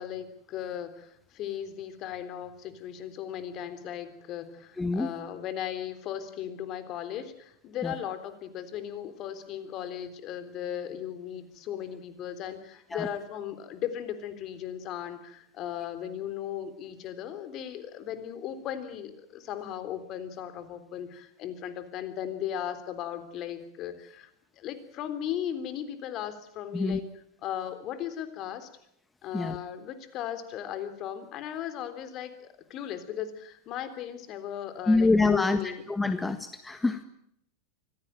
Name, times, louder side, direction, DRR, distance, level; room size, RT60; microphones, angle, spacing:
voice 1, 0.0-24.3 24.6-27.0 27.4-28.7 29.2-35.8, left 10 dB, 45° left, 11 dB, 3.6 m, -37 dB
voice 2, 4.8-5.1 7.8-7.9 12.9-13.1 26.7-27.0 29.3-29.6 34.9-37.0, left 3 dB, 10° left, 9 dB, 1.6 m, -26 dB
24.5 x 16.5 x 9.1 m, 0.74 s
hypercardioid pair, 95°, 0 cm